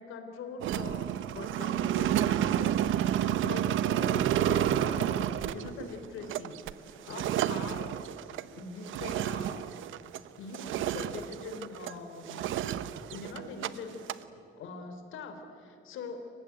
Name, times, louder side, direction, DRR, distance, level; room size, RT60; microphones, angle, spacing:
voice 1, 0.0-8.0 8.6-9.7 10.4-12.8 13.1-14.0 14.3-16.2, left 4 dB, 85° left, 7 dB, 3.4 m, -43 dB
sound 1, 0.6-10.3 10.5-12.0 12.3-13.7 13.9-14.2, right 11 dB, 80° right, 0.9 m, -30 dB
29.0 x 16.0 x 9.5 m, 2.8 s
cardioid pair, 90°, 20 cm